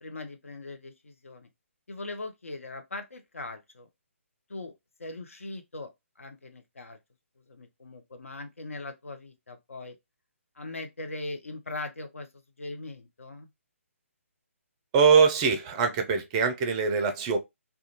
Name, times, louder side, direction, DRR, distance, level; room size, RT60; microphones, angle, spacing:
voice 1, 0.0-1.5 1.9-3.9 4.5-4.7 5.0-5.9 6.2-7.0 7.5-10.0 10.6-12.3 12.6-13.5, left 2 dB, 70° left, 0.6 m, -40 dB
voice 2, 14.9-17.4, right 5 dB, 20° right, 0.4 m, -22 dB
2.4 x 2.2 x 2.8 m
figure-of-eight pair, 140°, 8 cm